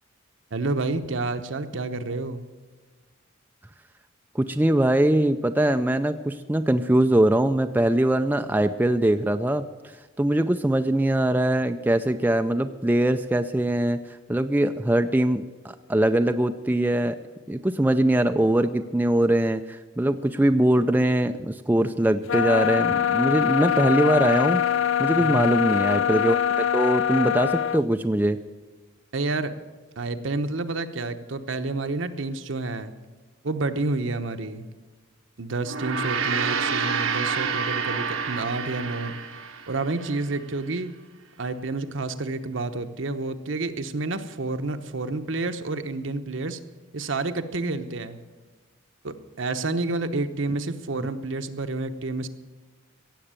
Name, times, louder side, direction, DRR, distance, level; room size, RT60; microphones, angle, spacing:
voice 1, 0.5-2.4 25.2-25.6 29.1-29.5 30.0-32.9 33.4-34.7 35.4-39.1 39.7-41.0 41.4-46.6 46.9-48.2 49.0-52.3, right 3 dB, 65° right, 9 dB, 0.9 m, -29 dB
voice 2, 4.3-9.7 10.2-14.0 14.3-17.2 17.5-28.4, right 1 dB, 10° right, 8 dB, 0.4 m, -22 dB
sound 1, 22.3-27.8, left 9 dB, 70° left, 0.4 m, -23 dB
Gong, 35.6-40.2, right 5 dB, 85° right, 1.3 m, -28 dB
16.5 x 7.8 x 8.9 m, 1.3 s
head